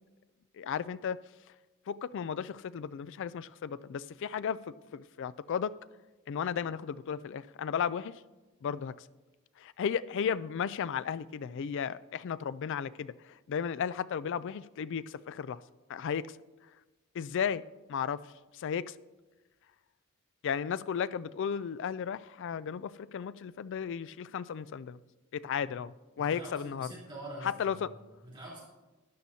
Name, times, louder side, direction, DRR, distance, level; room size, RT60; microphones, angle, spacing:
voice 1, 0.6-1.2 1.9-4.6 4.9-5.7 6.3-8.1 8.6-8.9 9.6-15.6 15.9-16.3 17.1-17.6 17.9-18.2 18.5-19.0 20.4-25.0 25.3-26.9 27.4-27.9, left 7 dB, 60° left, 0.3 m, -34 dB
voice 2, 26.3-28.6, right 1 dB, 25° right, 3.6 m, -45 dB
13.0 x 10.5 x 2.8 m
head